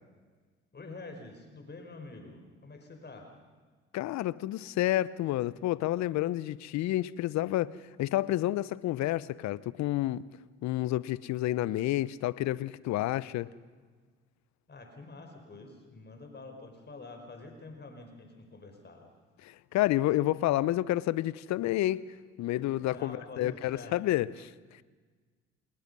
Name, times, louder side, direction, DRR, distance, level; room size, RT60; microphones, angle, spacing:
voice 1, 0.7-3.3 14.7-19.1 22.8-23.9, left 3 dB, 30° left, 4 dB, 5.0 m, -47 dB
voice 2, 3.9-7.7 8.0-10.2 10.6-13.5 19.4-22.0 22.4-24.5, left 15 dB, 60° left, 19 dB, 0.9 m, -29 dB
28.0 x 20.5 x 5.6 m, 1.4 s
hypercardioid pair, 60°, 32 cm